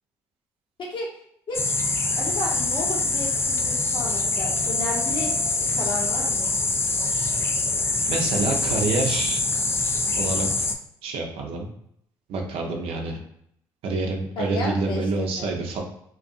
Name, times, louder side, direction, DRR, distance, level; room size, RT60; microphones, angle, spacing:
voice 1, 0.8-1.1 1.5-1.7 2.2-5.3 5.7-6.5 12.6-13.1 14.4-15.5, left 1 dB, 55° left, -2 dB, 0.9 m, -33 dB
sound 1, 1.5-10.7, left 3 dB, 25° left, 0.4 m, -24 dB
voice 2, 8.1-9.4 10.2-10.7 11.0-11.7 12.3-13.2 13.8-15.8, right 3 dB, 65° right, 2 dB, 0.6 m, -27 dB
2.6 x 2.2 x 2.5 m, 0.70 s
hypercardioid pair, 50°, 10 cm